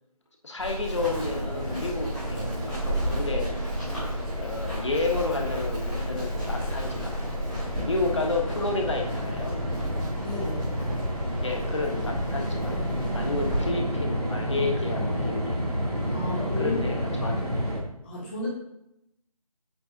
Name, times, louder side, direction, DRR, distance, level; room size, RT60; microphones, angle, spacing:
voice 1, 0.4-3.5 4.4-7.2 7.8-9.6 11.4-12.8 13.1-15.6 16.6-17.6, left 3 dB, 50° left, 2 dB, 1.4 m, -31 dB
Run, 0.6-13.7, equal, 5° left, 1.7 m, -33 dB
sound 1, 0.9-17.8, equal, 85° right, 2.5 m, -31 dB
sound 2, 3.0-4.2 4.5-5.3 7.4-8.7 9.4-10.2, equal, 15° right, 2.5 m, -39 dB
voice 2, 10.2-10.7 16.0-16.8 18.0-18.5, left 2 dB, 20° left, -7 dB, 2.2 m, -33 dB
8.5 x 6.8 x 2.6 m, 0.80 s
figure-of-eight pair, 160°, 20 cm